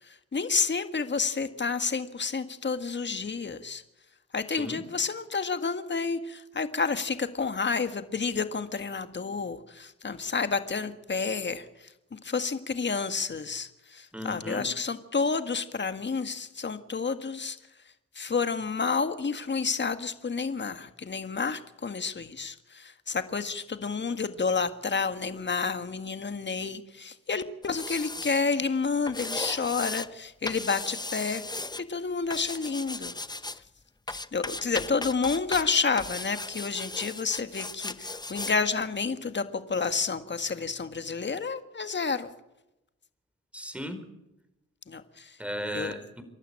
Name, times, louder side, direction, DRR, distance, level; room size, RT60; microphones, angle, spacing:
voice 1, 0.0-3.8 4.3-17.6 18.1-33.1 34.3-42.3 44.9-45.4 45.7-45.9, left 4 dB, 35° left, 10 dB, 1.8 m, -30 dB
voice 2, 14.1-14.7 43.5-44.0 45.4-46.2, equal, 5° right, 8 dB, 4.7 m, -36 dB
sound 1, 27.6-28.4 29.1-30.1 30.5-31.8 32.3-33.6 34.1-35.7 36.0-38.5 38.8-38.9, left 2 dB, 15° left, 0.8 m, -36 dB
28.0 x 12.0 x 8.8 m, 0.92 s
supercardioid pair, 55°, 30 cm